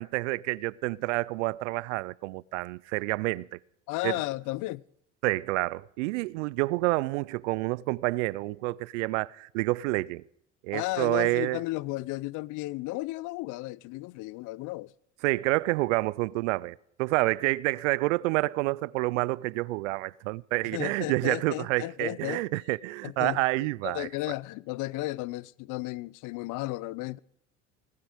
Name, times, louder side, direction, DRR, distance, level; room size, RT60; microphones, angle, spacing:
voice 1, 0.0-3.6 4.0-4.2 5.2-10.2 10.6-11.6 15.2-24.1, right 21 dB, 75° right, 0.5 m, -28 dB
voice 2, 3.9-4.8 10.7-14.9 20.7-22.4 23.0-27.2, left 19 dB, 55° left, 0.5 m, -34 dB
18.5 x 9.6 x 5.1 m
hypercardioid pair, 75°, 37 cm